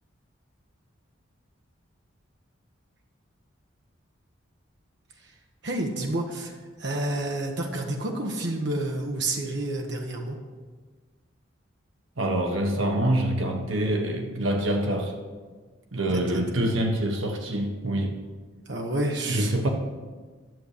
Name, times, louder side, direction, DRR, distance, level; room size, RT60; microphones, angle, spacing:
voice 1, 5.6-10.4 16.1-16.4 18.7-19.5, right 1 dB, 55° right, 1 dB, 1.3 m, -29 dB
voice 2, 12.2-15.1 15.9-18.2 19.3-19.7, right 1 dB, 80° right, 3 dB, 1.3 m, -26 dB
11.0 x 7.2 x 6.7 m, 1.4 s
head